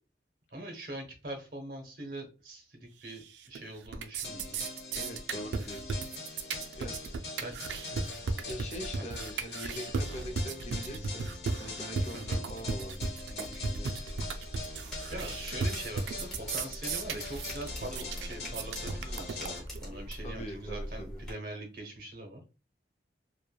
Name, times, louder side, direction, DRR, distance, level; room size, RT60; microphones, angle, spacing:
voice 1, 0.5-4.6 7.4-8.5 8.8-9.3 12.1-12.4 15.1-22.4, right 1 dB, 55° right, 3 dB, 0.8 m, -43 dB
sound 1, 3.1-3.6 3.8-19.8, right 4 dB, 85° right, 0.4 m, -35 dB
sound 2, 4.2-19.6, left 3 dB, 65° left, 0.9 m, -43 dB
voice 2, 4.9-6.1 6.8-7.0 8.4-11.3 11.6-14.0 19.9-21.2, equal, 40° left, 3 dB, 0.5 m, -43 dB
sound 3, 14.1-21.3, equal, 5° left, 1.0 m, -43 dB
3.1 x 2.1 x 2.2 m, 0.32 s
head